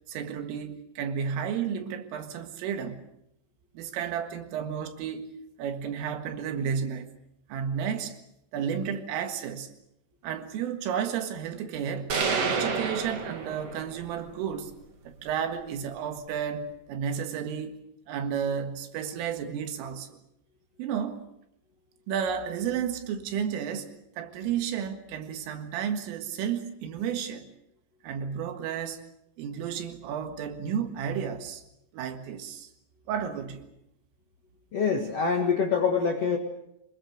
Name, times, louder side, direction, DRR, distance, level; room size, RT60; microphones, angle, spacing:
voice 1, 0.1-3.0 3.8-5.3 5.6-7.1 7.5-8.2 8.5-9.7 10.2-14.7 15.1-17.8 18.1-20.2 20.8-21.3 22.1-23.9 24.2-27.5 28.0-29.0 29.4-31.6 31.9-32.7 33.1-33.7, right 8 dB, 85° right, 4.3 m, -32 dB
sound 1, 12.1-14.1, right 5 dB, 50° right, 2.0 m, -29 dB
voice 2, 34.7-36.4, left 5 dB, 65° left, 1.5 m, -25 dB
25.5 x 21.5 x 6.5 m
omnidirectional pair, 5.8 m